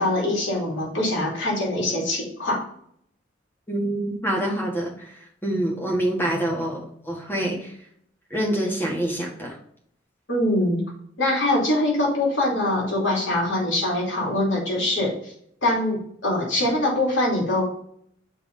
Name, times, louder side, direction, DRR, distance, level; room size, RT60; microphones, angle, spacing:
voice 1, 0.0-2.6 10.3-10.8 11.2-15.3 15.6-17.6, left 1 dB, 75° left, -3 dB, 2.8 m, -23 dB
voice 2, 3.7-5.1 5.4-7.7 8.3-9.5, right 1 dB, 10° left, -1 dB, 1.6 m, -26 dB
7.1 x 3.5 x 5.3 m, 0.66 s
head